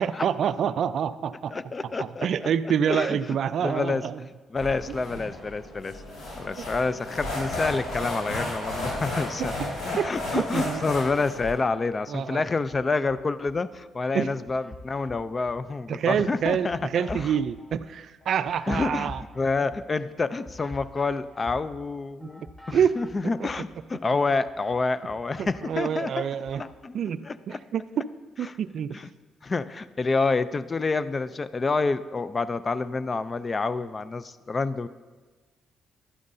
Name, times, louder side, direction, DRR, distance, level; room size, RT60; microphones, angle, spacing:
voice 1, 0.0-1.5 2.0-4.2 9.4-9.5 10.0-10.1 10.3-10.8 12.1-12.4 14.1-14.3 15.9-19.2 22.2-22.3 22.7-23.0 25.4-26.6 26.9-27.2 27.5-28.1 28.4-29.0, right 8 dB, 65° right, 14 dB, 0.3 m, -27 dB
voice 2, 1.5-2.5 2.9-3.2 3.6-4.0 4.5-6.0 6.4-9.5 9.8-17.3 18.7-26.2 26.6-27.0 27.2-27.6 28.4-28.5 28.9-29.0 29.4-34.9, left 3 dB, 30° left, 15 dB, 0.3 m, -28 dB
sound 1, 4.6-11.5, left 1 dB, 80° left, 3.2 m, -33 dB
sound 2, 12.2-13.8 14.2-23.9 24.2-26.8, left 1 dB, 15° left, 0.8 m, -47 dB
11.5 x 9.5 x 2.6 m, 1.4 s
cardioid pair, 90°, 0 cm